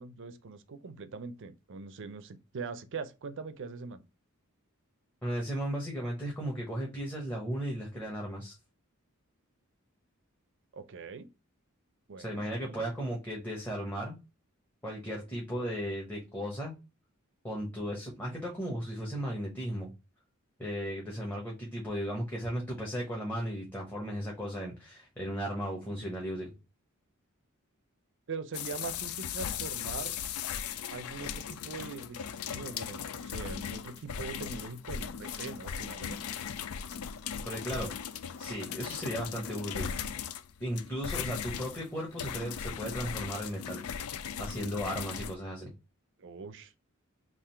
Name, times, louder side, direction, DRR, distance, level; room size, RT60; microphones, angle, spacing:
voice 1, 0.0-4.0 10.7-11.3 12.1-12.8 28.3-30.2 30.9-36.2 46.2-46.7, right 4 dB, 60° right, 0.5 m, -42 dB
voice 2, 5.2-8.6 12.2-14.2 14.8-16.7 17.4-19.9 20.6-26.5 37.5-37.9 38.4-39.9 40.6-43.8 44.4-45.7, equal, 10° left, 1.0 m, -35 dB
sound 1, 28.5-45.4, left 7 dB, 85° left, 0.4 m, -38 dB
3.7 x 2.5 x 4.3 m
head